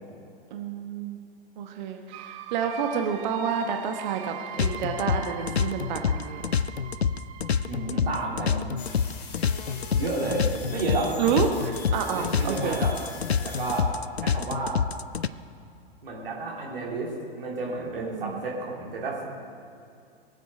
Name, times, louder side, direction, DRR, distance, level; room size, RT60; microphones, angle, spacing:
voice 1, 0.5-1.2 1.6-6.4 11.2-12.8 18.0-18.4, right 7 dB, 45° right, 4 dB, 1.1 m, -29 dB
sound 1, 2.1-9.7, right 10 dB, 25° right, 0.6 m, -42 dB
sound 2, 4.6-15.3, left 7 dB, 85° left, 0.5 m, -27 dB
voice 2, 7.7-8.7 9.9-11.1 12.1-12.9 13.4-13.9 14.2-14.8 16.0-19.2, right 3 dB, 60° right, -3 dB, 3.3 m, -31 dB
sound 3, 8.8-13.8, left 4 dB, 55° left, 2.2 m, -42 dB
23.0 x 8.3 x 5.0 m, 2.5 s
figure-of-eight pair, 100°, 31 cm